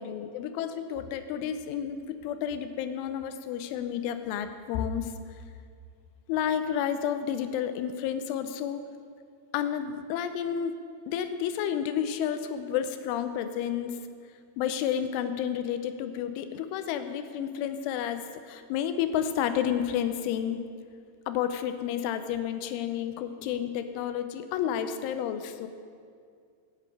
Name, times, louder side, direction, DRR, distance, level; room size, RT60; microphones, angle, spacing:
voice 1, 0.0-5.1 6.3-8.8 9.5-10.7 11.1-14.0 14.6-20.6 21.3-25.7, left 9 dB, 90° left, 9 dB, 3.2 m, -31 dB
9.5 x 8.4 x 7.7 m, 2.2 s
omnidirectional pair, 5.4 m